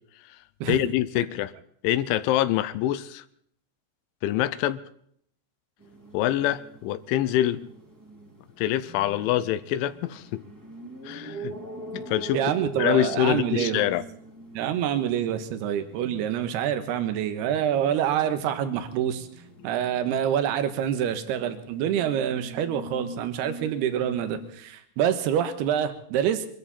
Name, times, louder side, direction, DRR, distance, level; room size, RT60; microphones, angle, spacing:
voice 1, 0.7-1.5 1.8-3.2 4.2-4.8 6.1-7.6 8.6-10.4 11.0-11.6 11.9-12.4 12.8-14.0, left 13 dB, 85° left, 3.2 m, -25 dB
sound 1, 5.8-24.5, right 2 dB, 5° right, 1.6 m, -43 dB
voice 2, 12.3-13.8 14.5-19.3 19.6-26.5, right 9 dB, 70° right, 3.1 m, -26 dB
24.0 x 14.0 x 4.3 m
omnidirectional pair, 5.3 m